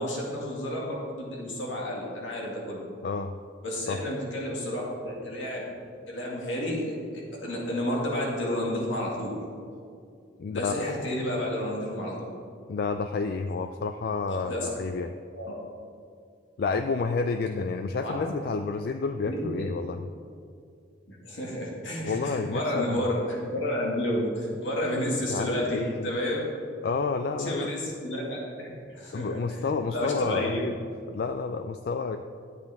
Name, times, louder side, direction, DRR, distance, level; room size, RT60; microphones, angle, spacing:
voice 1, 0.0-2.8 3.6-5.7 6.1-9.4 10.5-12.1 14.3-14.7 15.3-15.6 18.0-18.2 19.2-19.7 21.1-26.4 27.4-30.6, left 1 dB, 75° left, -3 dB, 2.0 m, -31 dB
voice 2, 3.0-3.4 3.9-4.0 10.4-10.9 12.7-15.1 16.6-20.1 22.0-23.0 25.3-26.1 26.8-27.7 29.1-30.8 31.1-32.2, left 4 dB, 50° left, 7 dB, 0.3 m, -30 dB
12.5 x 7.9 x 3.6 m, 2.3 s
head